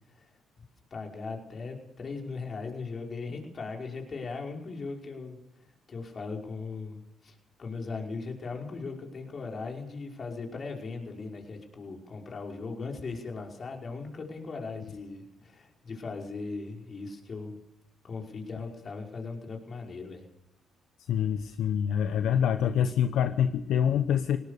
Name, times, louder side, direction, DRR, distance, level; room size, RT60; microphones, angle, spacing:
voice 1, 0.9-5.4 5.9-17.6 18.0-20.2, left 4 dB, 40° left, 1 dB, 5.4 m, -38 dB
voice 2, 21.1-24.4, left 8 dB, 75° left, 9 dB, 0.9 m, -26 dB
20.5 x 18.5 x 6.8 m, 0.84 s
supercardioid pair, 75°, 0 cm